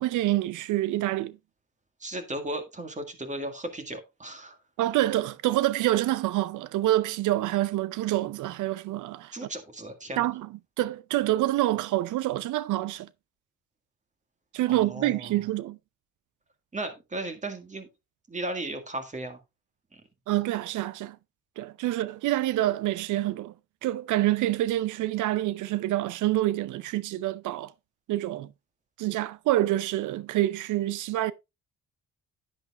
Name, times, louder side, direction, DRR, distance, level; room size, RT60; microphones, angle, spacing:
voice 1, 0.0-1.4 4.8-9.5 10.2-10.5 10.8-13.1 14.5-15.8 20.3-21.2 21.6-23.5 23.8-27.7 28.1-28.5 29.0-31.3, right 15 dB, 80° right, 0.5 m, -27 dB
voice 2, 2.0-4.6 9.3-10.3 14.7-15.4 16.7-17.9 18.3-19.4 19.9-20.0, right 1 dB, 25° right, 1.9 m, -36 dB
10.5 x 8.5 x 2.4 m
cardioid pair, 90°, 30 cm